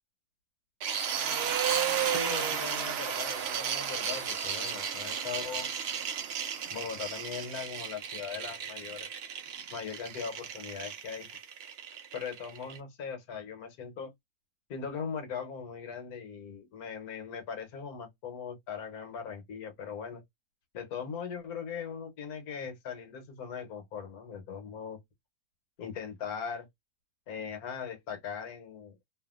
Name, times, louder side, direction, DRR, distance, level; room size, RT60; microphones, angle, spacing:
sound 1, 0.8-12.8, right 8 dB, 70° right, 0.6 m, -33 dB
voice 1, 2.0-5.7 6.7-9.1 9.7-11.3 12.1-14.1 14.7-20.2 20.7-25.0 25.8-26.7 27.3-29.0, left 6 dB, 70° left, 1.3 m, -40 dB
2.7 x 2.5 x 2.3 m
omnidirectional pair, 1.7 m